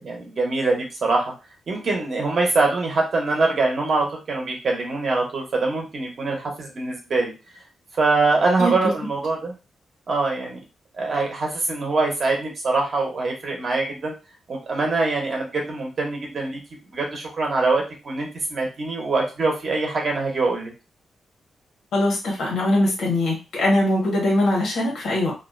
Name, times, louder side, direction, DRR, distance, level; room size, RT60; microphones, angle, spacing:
voice 1, 0.0-1.3 1.7-7.3 8.0-9.5 10.1-10.6 10.9-14.1 14.5-16.6 16.9-20.7, right 3 dB, 40° right, 0 dB, 0.7 m, -23 dB
voice 2, 8.6-8.9 21.9-25.3, left 1 dB, 90° left, -1 dB, 1.2 m, -21 dB
2.4 x 2.1 x 2.4 m, 0.29 s
wide cardioid pair, 170°, 0 cm